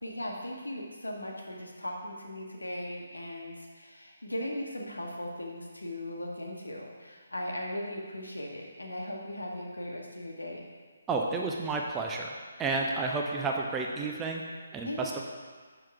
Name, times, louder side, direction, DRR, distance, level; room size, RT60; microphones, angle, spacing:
voice 1, 0.0-10.7 14.8-15.1, left 1 dB, 80° left, -1 dB, 1.0 m, -38 dB
voice 2, 11.1-12.3 12.6-14.4 14.7-15.2, right 3 dB, 10° right, 0 dB, 0.5 m, -31 dB
5.8 x 4.6 x 4.6 m, 1.5 s
figure-of-eight pair, 145°, 0 cm